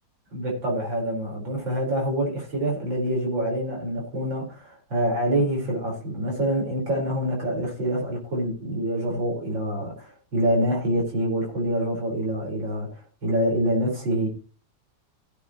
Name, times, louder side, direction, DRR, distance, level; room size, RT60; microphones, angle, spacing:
voice 1, 0.3-14.3, equal, 80° right, 5.1 m, -26 dB
16.5 x 8.5 x 2.9 m
omnidirectional pair, 2.0 m